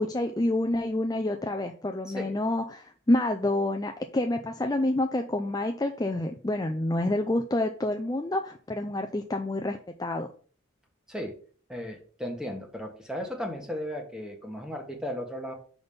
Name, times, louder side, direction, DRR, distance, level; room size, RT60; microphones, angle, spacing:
voice 1, 0.0-10.3, left 1 dB, 20° left, 5 dB, 0.5 m, -28 dB
voice 2, 2.0-2.3 11.1-11.3 11.7-15.5, equal, 5° right, 2 dB, 1.4 m, -35 dB
6.2 x 5.2 x 5.4 m, 0.43 s
head